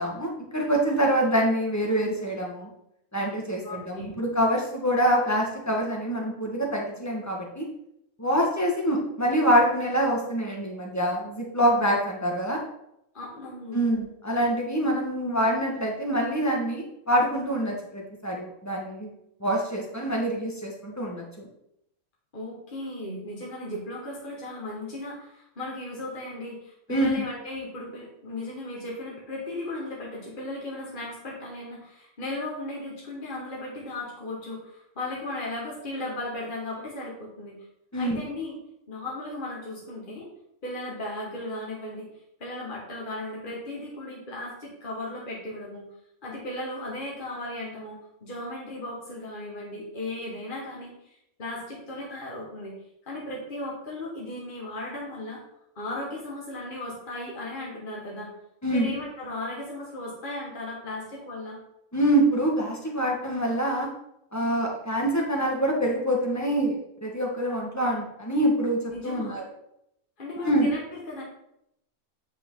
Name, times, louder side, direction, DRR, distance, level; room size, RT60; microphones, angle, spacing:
voice 1, 0.0-2.7 3.1-7.7 8.2-12.6 13.7-19.1 19.4-21.5 26.9-27.2 37.9-38.2 58.6-58.9 61.9-63.9 64.3-66.7 67.0-69.4 70.4-70.7, right 1 dB, 10° left, -1 dB, 1.6 m, -25 dB
voice 2, 3.6-4.1 13.1-13.8 22.3-37.6 38.0-38.6 38.9-40.3 40.6-42.1 42.4-45.8 46.2-50.9 51.4-52.7 53.1-55.4 55.8-58.3 58.7-61.6 68.9-69.4 70.2-71.2, left 1 dB, 35° left, -4 dB, 2.0 m, -36 dB
9.1 x 5.8 x 3.9 m, 0.79 s
omnidirectional pair, 1.5 m